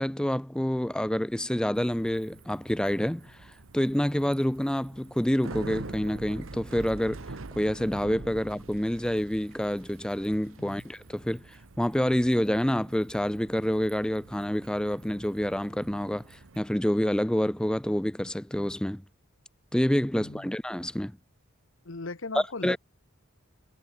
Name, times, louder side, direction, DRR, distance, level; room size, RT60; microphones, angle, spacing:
voice 1, 0.0-3.3 3.7-7.3 7.6-11.4 11.8-19.0 19.7-21.1 22.6-22.8, equal, 5° left, 0.5 m, -27 dB
Bicycle, 1.7-16.6, right 3 dB, 75° right, 1.1 m, -45 dB
voice 2, 20.2-20.5 21.8-22.8, left 3 dB, 70° left, 1.1 m, -38 dB
head